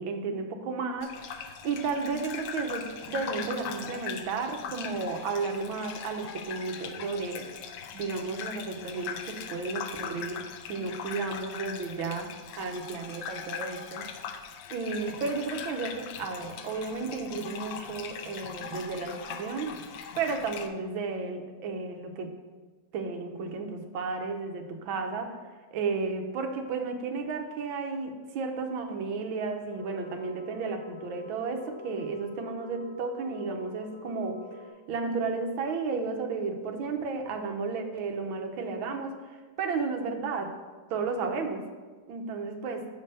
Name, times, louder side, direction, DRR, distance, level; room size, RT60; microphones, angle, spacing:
voice 1, 0.0-7.5 7.9-14.1 14.7-19.7 20.2-22.3 22.9-25.4 25.7-34.4 34.9-40.5 40.9-41.7 42.1-42.8, right 4 dB, 85° right, 5 dB, 1.7 m, -33 dB
Gurgling / Bathtub (filling or washing), 1.0-20.7, left 7 dB, 80° left, 1.4 m, -40 dB
sound 1, 29.7-34.7, left 2 dB, 10° right, 1.2 m, -46 dB
7.0 x 5.4 x 6.7 m, 1.3 s
omnidirectional pair, 2.2 m